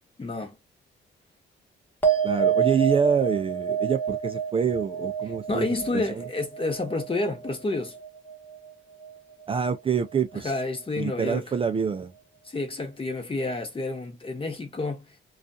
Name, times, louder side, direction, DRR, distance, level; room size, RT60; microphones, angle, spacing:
voice 1, 0.2-0.6 5.5-8.0 10.3-11.5 12.4-15.1, left 2 dB, 25° left, 1.1 m, -29 dB
sound 1, 2.0-8.7 9.0-9.6, right 7 dB, 10° left, 1.0 m, -29 dB
voice 2, 2.2-5.7 5.9-6.0 9.5-10.5 11.0-12.1, right 6 dB, 30° right, 0.4 m, -26 dB
2.4 x 2.4 x 2.6 m
cardioid pair, 90°, 20 cm